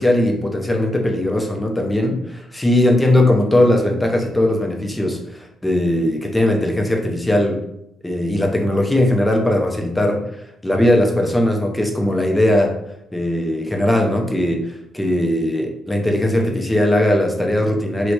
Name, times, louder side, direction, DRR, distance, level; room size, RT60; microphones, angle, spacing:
voice 1, 0.0-7.6 8.0-10.2 10.6-12.7 13.1-14.6 14.9-18.1, left 1 dB, 10° left, 2 dB, 0.4 m, -19 dB
2.7 x 2.0 x 2.2 m, 0.79 s
cardioid pair, 90°, 0 cm